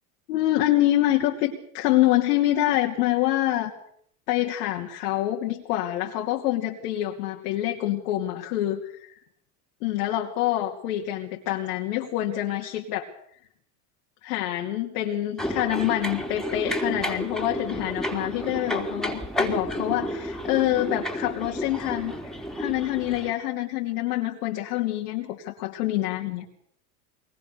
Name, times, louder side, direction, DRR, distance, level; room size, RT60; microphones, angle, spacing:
voice 1, 0.3-3.7 4.3-9.1 9.8-13.1 14.2-22.1 22.5-26.5, left 14 dB, 75° left, 0 dB, 2.6 m, -26 dB
sound 1, 15.4-23.3, left 1 dB, ahead, 3.8 m, -31 dB
23.0 x 20.5 x 6.6 m, 0.67 s
hypercardioid pair, 95°, 46 cm